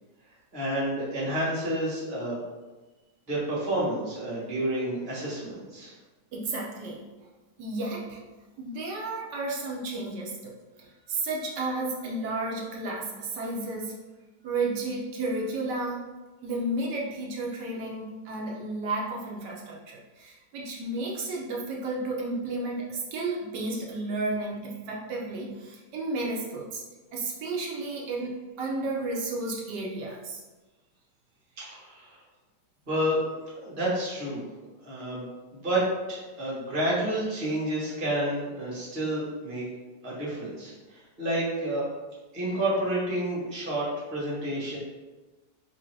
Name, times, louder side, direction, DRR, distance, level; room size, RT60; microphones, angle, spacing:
voice 1, 0.5-2.4 3.3-5.9 31.6-32.2 32.9-34.4 34.8-35.2 35.5-39.6 40.0-41.9 42.3-44.8, right 1 dB, 35° right, -6 dB, 1.2 m, -30 dB
voice 2, 6.3-7.0 7.6-8.2 8.6-10.3 10.8-14.0 14.4-16.1 16.4-26.8 27.1-30.4, right 2 dB, 85° right, -2 dB, 1.3 m, -32 dB
3.1 x 2.7 x 4.4 m, 1.2 s
omnidirectional pair, 1.8 m